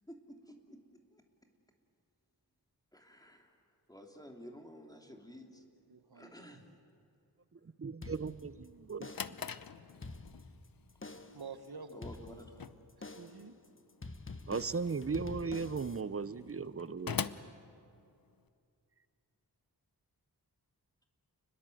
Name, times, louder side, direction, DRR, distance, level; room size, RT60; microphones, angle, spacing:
voice 1, 0.1-0.8 1.1-1.2 2.9-3.6 3.9-5.6 6.1-6.6 11.1-11.2 11.9-12.7, equal, 10° left, 3 dB, 2.9 m, -52 dB
voice 2, 5.5-6.4 11.3-12.7 13.2-13.6, right 4 dB, 75° right, 9 dB, 1.7 m, -50 dB
voice 3, 7.5-9.1 9.4-9.5 14.5-17.5, right 5 dB, 35° right, 16 dB, 0.7 m, -37 dB
sound 1, 8.0-8.7 9.0-9.5 9.9-10.7 11.0-11.5 12.0-12.7 13.0-13.5 14.0-16.0, left 2 dB, 30° left, 1.4 m, -47 dB
Drawer open or close, 8.8-18.5, left 7 dB, 60° left, 0.8 m, -45 dB
29.5 x 21.0 x 7.8 m, 2.5 s
wide cardioid pair, 85°, 39 cm